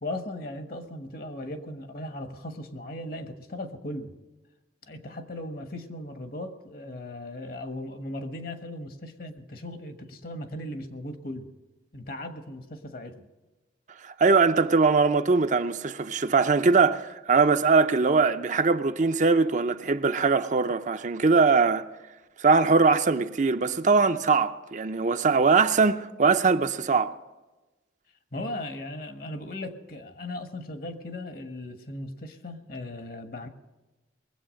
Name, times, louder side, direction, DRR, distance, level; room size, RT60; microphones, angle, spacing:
voice 1, 0.0-4.1 4.9-11.5 11.9-13.3 28.3-33.5, left 1 dB, 55° left, 1.3 m, -37 dB
voice 2, 14.0-21.9 22.4-27.1, right 4 dB, 45° right, 0.6 m, -21 dB
21.0 x 8.0 x 6.4 m
head